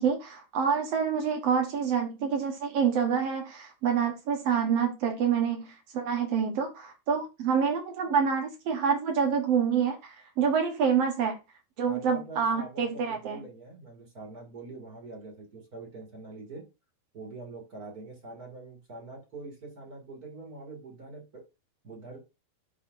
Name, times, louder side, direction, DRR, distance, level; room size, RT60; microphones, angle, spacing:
voice 1, 0.0-5.7 5.9-11.4 11.8-13.4, right 6 dB, 75° right, 1.4 m, -27 dB
voice 2, 11.9-16.6 17.1-21.4 21.8-22.2, right 3 dB, 30° right, 1.9 m, -44 dB
12.0 x 4.9 x 2.6 m
omnidirectional pair, 4.5 m